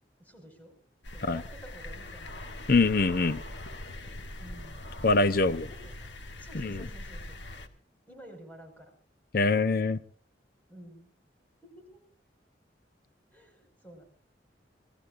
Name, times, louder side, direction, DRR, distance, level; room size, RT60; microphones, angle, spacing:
voice 1, 0.2-0.7 1.1-2.4 4.4-4.8 5.2-6.1 6.4-7.4 8.1-8.9 10.7-11.1 11.6-12.0 13.3-14.0, right 1 dB, 10° left, 4 dB, 5.1 m, -50 dB
sound 1, 1.0-7.7, left 1 dB, 85° left, 1.9 m, -42 dB
voice 2, 2.7-3.4 5.0-5.7 6.5-6.8 9.3-10.0, left 3 dB, 55° left, 13 dB, 0.8 m, -24 dB
28.0 x 19.0 x 2.5 m, 0.42 s
head